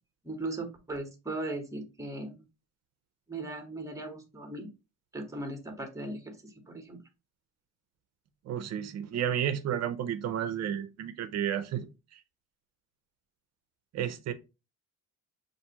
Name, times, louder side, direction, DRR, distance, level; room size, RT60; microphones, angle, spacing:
voice 1, 0.2-2.4 3.3-4.7 5.1-7.0, right 2 dB, 10° right, 1.0 m, -38 dB
voice 2, 8.5-11.9 13.9-14.3, right 9 dB, 50° right, 0.5 m, -32 dB
5.7 x 2.6 x 2.8 m
cardioid pair, 125°, 34 cm